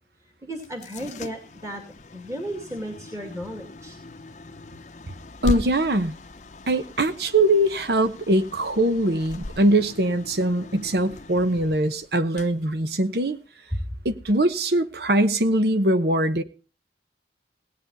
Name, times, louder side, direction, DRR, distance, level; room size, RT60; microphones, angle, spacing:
voice 1, 0.4-1.8 2.1-4.0, right 1 dB, 20° right, 3 dB, 2.4 m, -34 dB
sound 1, 0.5-13.5, left 2 dB, 40° left, 0.7 m, -38 dB
voice 2, 5.4-6.2 6.7-13.4 14.0-16.4, right 1 dB, 60° right, 11 dB, 1.0 m, -22 dB
18.0 x 9.6 x 4.1 m, 0.36 s
head